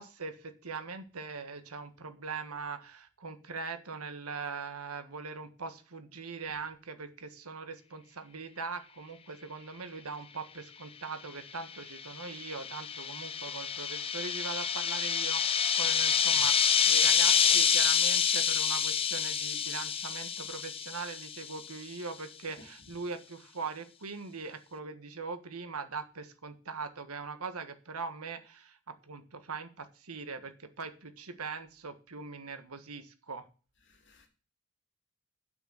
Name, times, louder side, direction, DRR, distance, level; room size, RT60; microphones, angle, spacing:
voice 1, 0.0-33.5, right 4 dB, 85° right, 1.5 m, -41 dB
sound 1, 11.7-21.5, left 7 dB, 25° left, 0.7 m, -28 dB
voice 2, 22.5-23.0 33.8-34.3, left 1 dB, 55° left, 2.7 m, -59 dB
8.0 x 6.3 x 7.5 m
head